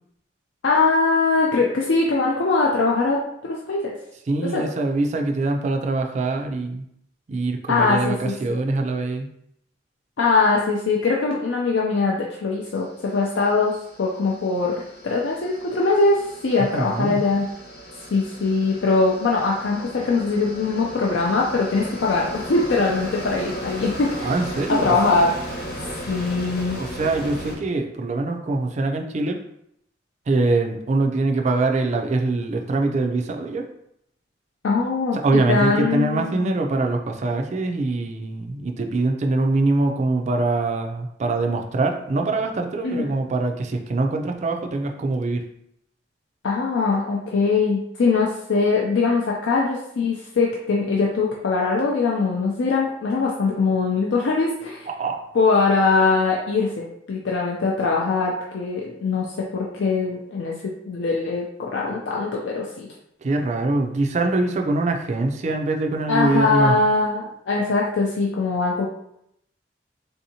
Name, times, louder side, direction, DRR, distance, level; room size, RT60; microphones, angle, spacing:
voice 1, 0.6-4.0 4.4-4.7 7.7-8.3 10.2-17.5 18.1-24.3 24.7-25.5 26.1-26.8 34.6-36.5 42.8-43.0 46.4-54.9 55.3-62.9 66.1-68.9, left 3 dB, 75° left, -2 dB, 0.4 m, -22 dB
voice 2, 4.3-6.8 7.3-9.3 16.7-17.2 24.2-25.0 26.8-29.4 30.3-33.6 35.1-45.4 54.9-55.2 63.2-66.7, right 2 dB, 40° right, 4 dB, 0.3 m, -23 dB
sound 1, 12.9-27.6, equal, 55° left, 0.9 m, -36 dB
3.5 x 2.7 x 2.7 m, 0.76 s
head